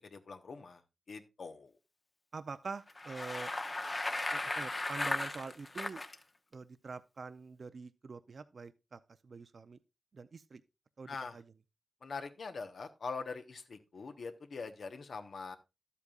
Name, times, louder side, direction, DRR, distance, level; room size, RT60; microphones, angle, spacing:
voice 1, 0.1-0.8 1.1-1.7 11.1-11.4 12.0-15.6, left 4 dB, 70° left, 1.1 m, -43 dB
voice 2, 2.3-3.5 4.3-6.0 6.5-9.8 10.1-10.6 11.0-11.4, right 4 dB, 60° right, 0.5 m, -45 dB
Bicycle, 2.9-6.2, left 2 dB, 30° left, 0.9 m, -36 dB
12.0 x 8.3 x 2.4 m
wide cardioid pair, 85°, 0 cm